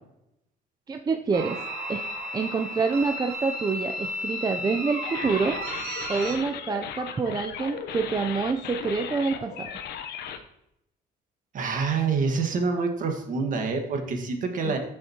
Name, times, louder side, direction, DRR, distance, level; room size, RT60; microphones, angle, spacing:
voice 1, 0.9-1.6 1.9-2.1 2.3-5.6 6.1-9.7 14.6-14.8, right 4 dB, 25° right, 5 dB, 0.6 m, -27 dB
sound 1, 1.3-6.4, equal, 85° right, 2.3 m, -33 dB
sound 2, 5.0-10.4, left 8 dB, 75° left, 1.0 m, -37 dB
voice 2, 11.5-14.8, right 4 dB, 50° right, 4 dB, 1.7 m, -26 dB
14.5 x 6.4 x 3.0 m, 0.82 s
cardioid pair, 110°, 17 cm